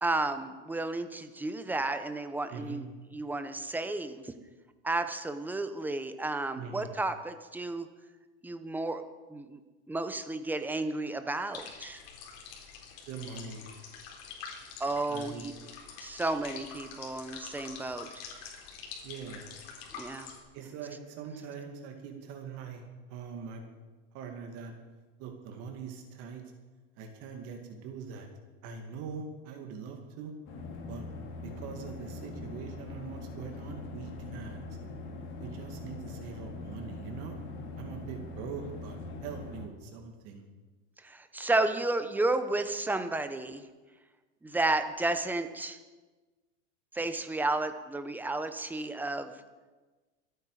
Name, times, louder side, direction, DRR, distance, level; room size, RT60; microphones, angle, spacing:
voice 1, 0.0-4.3 4.8-7.9 8.4-9.0 9.3-9.6 9.9-12.0 14.8-15.5 16.0-18.1 19.9-20.3 41.0-43.6 44.4-45.8 46.9-49.3, right 2 dB, 5° right, 9 dB, 1.0 m, -32 dB
voice 2, 2.5-2.8 6.6-6.9 13.0-13.6 15.1-15.4 19.0-19.4 20.5-22.8 23.1-23.6 24.1-24.7 25.2-26.4 27.0-28.3 28.6-30.3 30.8-31.0 31.4-34.8 35.4-37.3 37.8-40.4, right 6 dB, 50° right, 4 dB, 2.4 m, -42 dB
sound 1, 11.5-20.4, left 6 dB, 65° left, 3.9 m, -46 dB
sound 2, 30.5-39.7, left 3 dB, 40° left, 2.8 m, -42 dB
24.5 x 9.3 x 5.0 m, 1.3 s
supercardioid pair, 130°, 31 cm